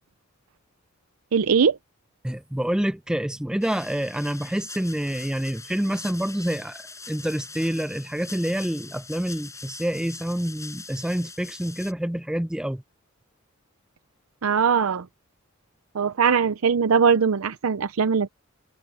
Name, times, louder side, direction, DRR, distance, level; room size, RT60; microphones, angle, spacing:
voice 1, 1.3-1.8 14.4-15.0 15.9-18.3, right 6 dB, 85° right, 0.6 m, -21 dB
voice 2, 2.2-12.8, equal, 5° right, 0.3 m, -27 dB
sound 1, 3.6-11.9, left 4 dB, 15° left, 6.7 m, -42 dB
head